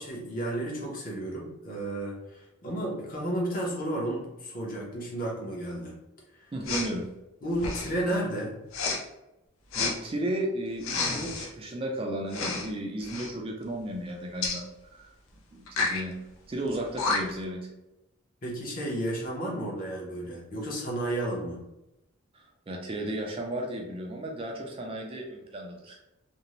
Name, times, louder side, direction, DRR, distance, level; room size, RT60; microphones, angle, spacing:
voice 1, 0.0-5.9 6.4-6.5 7.4-8.6 18.4-21.6, right 1 dB, 40° left, -2 dB, 0.7 m, -32 dB
voice 2, 6.5-7.1 9.7-15.1 15.5-16.2 16.5-17.7 22.3-26.0, right 1 dB, 25° right, 1 dB, 0.4 m, -34 dB
Respiratory sounds, 6.6-6.9 7.6-8.0 8.7-9.0 9.7-9.9 10.8-11.5 12.3-12.7 13.0-13.3 14.4-14.6 15.7-16.0 16.7-16.8 17.0-17.4, left 3 dB, 75° left, 0.5 m, -30 dB
2.5 x 2.0 x 2.9 m, 0.94 s
head